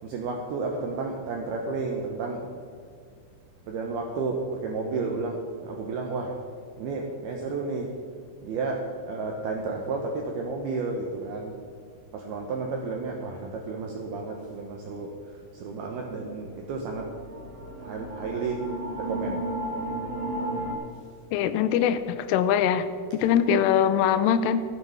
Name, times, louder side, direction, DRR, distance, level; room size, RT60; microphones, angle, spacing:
voice 1, 0.0-2.5 3.7-6.4 6.8-7.9 8.4-11.6 12.1-17.1 17.7-18.6 19.0-19.5, right 3 dB, 75° right, 1 dB, 2.3 m, -32 dB
sound 1, 16.3-20.7, right 1 dB, 45° right, 3.4 m, -34 dB
voice 2, 21.3-22.9 23.1-24.6, left 8 dB, 85° left, 12 dB, 3.1 m, -22 dB
14.5 x 9.7 x 5.9 m, 2.2 s
omnidirectional pair, 5.7 m